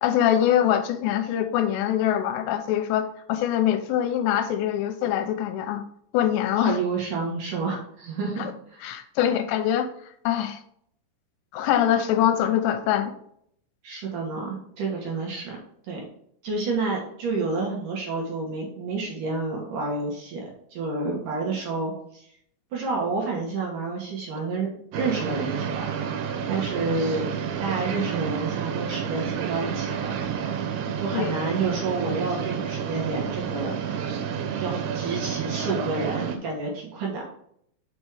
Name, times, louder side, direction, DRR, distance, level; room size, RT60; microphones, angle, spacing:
voice 1, 0.0-5.8 6.1-6.8 8.4-8.5 8.8-9.9 10.3-10.6 11.5-13.1 31.1-31.4, left 10 dB, 90° left, 9 dB, 2.9 m, -23 dB
voice 2, 6.6-8.8 13.8-15.6 15.9-16.0 16.4-20.4 20.7-21.9 22.7-25.9 26.5-27.3 27.6-30.5 31.0-34.1 34.6-37.3, right 3 dB, 60° right, -2 dB, 2.4 m, -29 dB
sound 1, 24.9-36.4, right 7 dB, 90° right, 3.2 m, -30 dB
6.1 x 5.4 x 4.8 m, 0.67 s
omnidirectional pair, 5.1 m